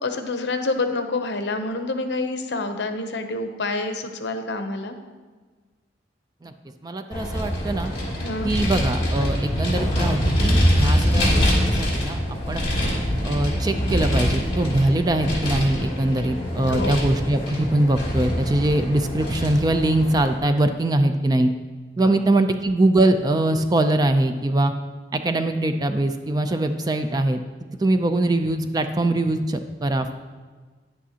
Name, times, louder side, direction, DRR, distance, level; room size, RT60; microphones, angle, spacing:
voice 1, 0.0-5.0 8.2-8.5 16.7-17.0 22.0-22.1, left 2 dB, 70° left, 7 dB, 0.7 m, -27 dB
voice 2, 6.8-7.9 8.4-12.2 12.5-12.6 13.2-21.5 22.0-24.7 25.1-27.4 27.8-30.1, right 1 dB, 20° right, 8 dB, 0.4 m, -22 dB
Vehicle, 7.1-20.3, equal, 30° left, 2.6 m, -24 dB
10.0 x 8.5 x 2.8 m, 1.4 s
head